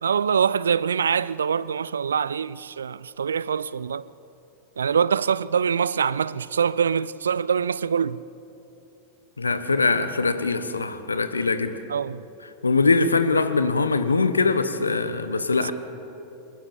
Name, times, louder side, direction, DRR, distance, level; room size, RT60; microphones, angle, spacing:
voice 1, 0.0-4.1 4.8-8.2 11.9-12.2 15.6-15.7, right 7 dB, 70° right, 0.4 m, -24 dB
voice 2, 9.4-11.7 12.6-15.7, left 4 dB, 75° left, 1.2 m, -22 dB
23.5 x 20.5 x 7.2 m
figure-of-eight pair, 90°, 0 cm